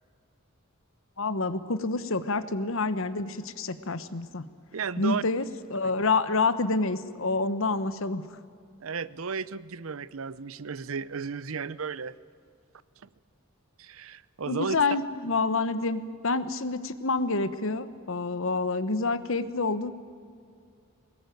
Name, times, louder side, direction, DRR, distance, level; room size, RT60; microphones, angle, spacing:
voice 1, 1.2-4.5 5.0-5.4 5.7-8.2 14.5-19.9, left 3 dB, 65° left, 13 dB, 1.2 m, -28 dB
voice 2, 4.7-5.2 5.8-5.9 8.8-12.1 13.8-14.8, right 5 dB, 75° right, 18 dB, 0.7 m, -34 dB
22.5 x 19.5 x 9.4 m, 2.2 s
head